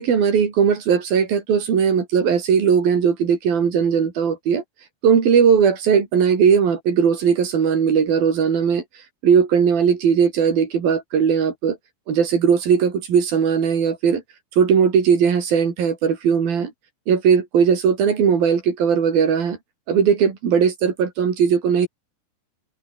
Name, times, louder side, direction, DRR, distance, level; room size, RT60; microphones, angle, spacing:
voice 1, 0.0-4.6 5.0-8.8 9.2-11.8 12.1-14.2 14.6-16.7 17.1-19.6 19.9-21.9, right 7 dB, 75° right, 5.4 m, -18 dB
omnidirectional pair, 4.2 m